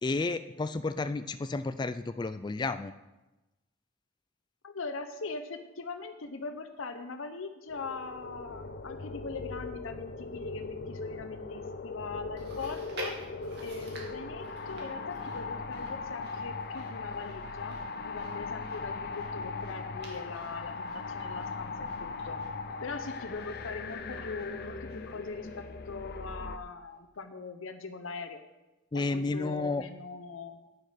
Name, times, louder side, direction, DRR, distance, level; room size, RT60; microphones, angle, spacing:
voice 1, 0.0-2.9 28.9-29.9, left 3 dB, 20° left, 11 dB, 0.3 m, -31 dB
voice 2, 4.6-13.2 13.6-17.8 18.0-22.4 22.8-28.4 28.9-30.6, left 4 dB, 85° left, 8 dB, 0.8 m, -41 dB
sound 1, 7.7-26.6, left 4 dB, 50° left, 0.6 m, -39 dB
Chewing mastication, 12.4-25.9 26.2-26.3 27.1-27.2, right 2 dB, 55° right, 2.5 m, -50 dB
10.5 x 8.6 x 5.1 m, 1.0 s
head